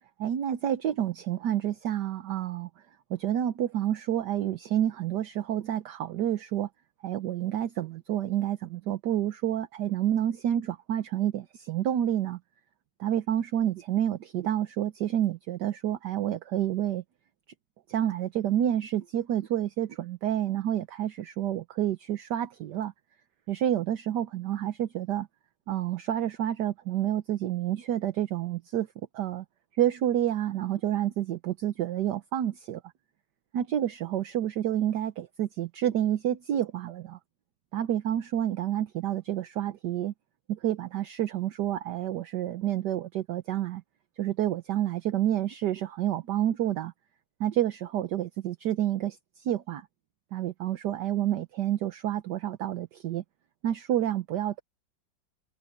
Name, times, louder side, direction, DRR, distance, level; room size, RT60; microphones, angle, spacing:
voice 1, 0.2-2.7 3.1-6.7 7.0-12.4 13.0-17.0 17.9-22.9 23.5-25.3 25.7-28.9 29.1-29.4 29.8-32.8 33.5-37.2 37.7-40.1 40.5-43.8 44.2-46.9 47.4-49.9 50.3-53.2 53.6-54.6, right 11 dB, 65° right, 1.4 m, -29 dB
omnidirectional pair, 2.1 m